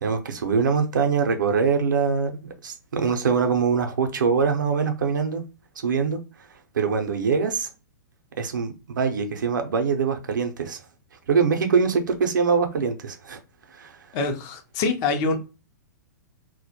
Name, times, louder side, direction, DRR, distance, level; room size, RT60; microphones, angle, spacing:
voice 1, 0.0-5.4 5.8-6.2 6.7-7.7 8.4-10.8 11.3-13.4 13.7-14.0, right 5 dB, 80° right, 0.6 m, -23 dB
voice 2, 14.1-15.4, left 3 dB, 40° left, 0.6 m, -25 dB
2.2 x 2.1 x 2.8 m
hypercardioid pair, 120°, 10 cm